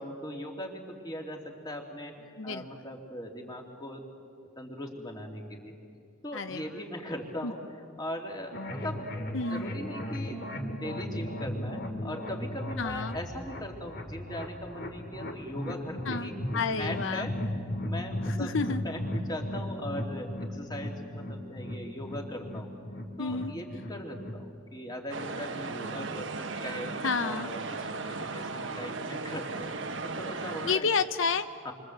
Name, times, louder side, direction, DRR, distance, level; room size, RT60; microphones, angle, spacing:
voice 1, 0.0-4.0 4.6-5.7 6.2-10.4 10.7-16.4 16.8-17.4 17.8-22.7 23.2-26.9 27.2-29.7 30.0-30.9 31.6-31.7, left 1 dB, 20° left, 1 dB, 2.9 m, -40 dB
sound 1, 8.5-24.4, left 1 dB, 55° left, 2.5 m, -36 dB
voice 2, 9.3-9.7 12.8-13.2 16.1-17.3 18.4-18.8 23.2-23.5 27.0-27.5 30.7-31.5, left 4 dB, 75° left, 10 dB, 0.7 m, -30 dB
sound 2, 25.1-30.8, right 3 dB, 70° right, 1.4 m, -36 dB
28.5 x 24.0 x 8.0 m, 2.4 s
head